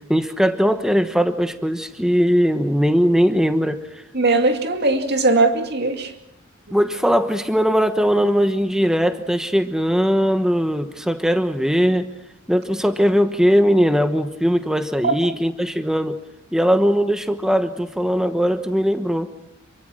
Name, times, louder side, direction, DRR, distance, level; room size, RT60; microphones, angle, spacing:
voice 1, 0.1-4.0 6.7-12.1 12.5-16.2 16.5-19.3, equal, 5° right, 1.1 m, -19 dB
voice 2, 4.1-6.1 15.0-15.1, right 3 dB, 55° right, 2.5 m, -19 dB
27.5 x 24.5 x 6.3 m
head